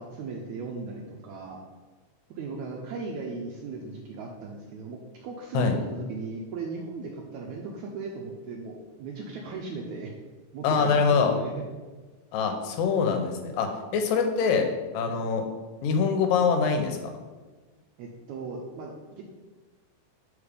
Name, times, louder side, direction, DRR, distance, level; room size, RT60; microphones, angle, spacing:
voice 1, 0.0-1.6 2.4-10.1 10.5-11.6 15.1-15.2 18.0-19.2, right 4 dB, 80° right, 0 dB, 1.7 m, -37 dB
voice 2, 10.6-11.3 12.3-14.7 14.9-15.5 15.8-17.1, left 5 dB, 85° left, 5 dB, 2.4 m, -24 dB
5.3 x 5.0 x 5.0 m, 1.3 s
omnidirectional pair, 4.0 m